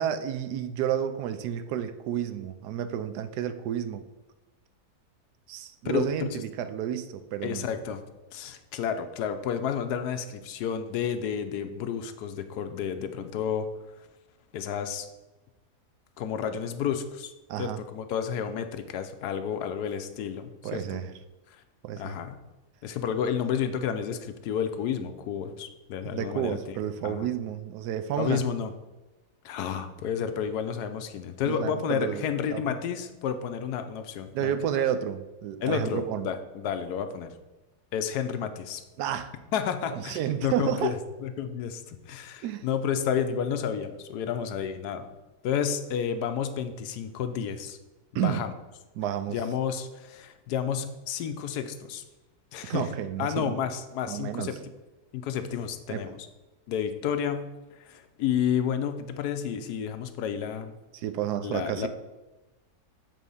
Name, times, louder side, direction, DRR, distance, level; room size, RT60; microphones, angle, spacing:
voice 1, 0.0-4.1 5.5-7.7 17.5-17.8 20.6-21.1 21.8-22.2 26.0-28.4 31.5-32.7 34.3-36.3 39.0-39.3 39.9-40.9 42.4-42.7 48.1-48.4 49.0-49.4 52.7-53.6 54.0-54.6 55.9-56.1 60.9-61.9, right 10 dB, 85° right, 11 dB, 1.2 m, -31 dB
voice 2, 5.8-6.4 7.4-8.0 8.3-13.7 14.5-15.1 16.2-17.3 17.6-21.1 22.0-22.4 22.8-26.8 27.0-27.3 28.2-28.7 29.4-34.5 35.6-37.3 37.9-38.8 39.5-40.9 41.2-45.1 45.4-47.8 48.1-48.5 49.3-52.0 52.5-52.8 53.2-54.6 55.1-56.2 56.7-57.5 57.8-60.7 61.4-61.9, left 8 dB, 80° left, 9 dB, 1.2 m, -31 dB
7.5 x 3.7 x 5.4 m, 1.1 s
omnidirectional pair, 1.7 m